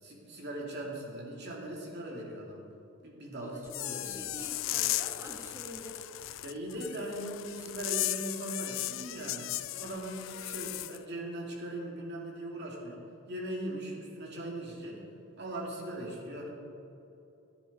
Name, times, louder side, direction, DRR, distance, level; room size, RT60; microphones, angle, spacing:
voice 1, 0.0-2.6 3.0-4.2 6.4-15.0 15.4-16.5, right 1 dB, 55° right, -1 dB, 2.2 m, -40 dB
voice 2, 3.4-6.0, equal, 15° right, -3 dB, 1.5 m, -46 dB
sound 1, 3.7-11.0, left 16 dB, 65° left, 0.3 m, -36 dB
14.0 x 9.5 x 4.1 m, 2.8 s
head